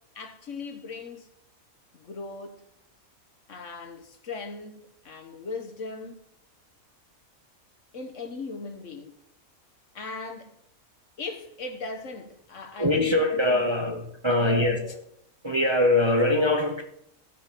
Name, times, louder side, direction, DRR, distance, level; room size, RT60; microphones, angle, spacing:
voice 1, 0.1-1.3 1.9-2.7 3.5-6.2 7.9-9.2 9.9-10.5 11.2-14.0 14.4-15.0, left 3 dB, 60° left, 1.5 m, -38 dB
voice 2, 12.8-15.0 15.4-16.8, left 2 dB, 20° right, 0.9 m, -23 dB
15.0 x 6.2 x 6.0 m
omnidirectional pair, 1.5 m